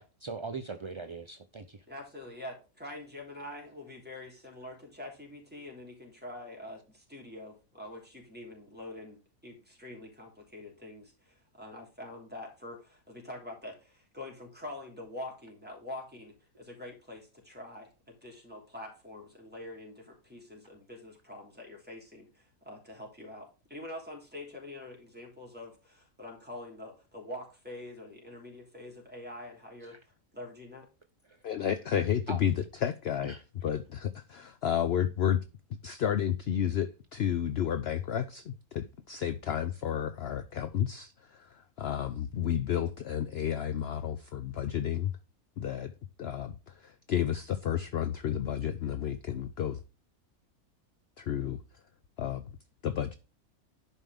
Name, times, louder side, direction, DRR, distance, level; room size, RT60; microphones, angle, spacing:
voice 1, 0.0-1.8 29.8-30.0 31.3-31.4 31.9-32.0 32.3-32.4 33.2-33.4, right 4 dB, 40° right, 0.4 m, -41 dB
voice 2, 1.9-30.9, left 1 dB, 5° right, 3.3 m, -45 dB
voice 3, 31.4-32.5 32.8-33.3 33.6-35.4 35.8-45.1 45.6-45.9 46.2-49.8 51.2-51.6 52.2-52.4 52.8-53.2, left 9 dB, 60° left, 0.7 m, -31 dB
11.0 x 5.4 x 3.5 m
omnidirectional pair, 1.5 m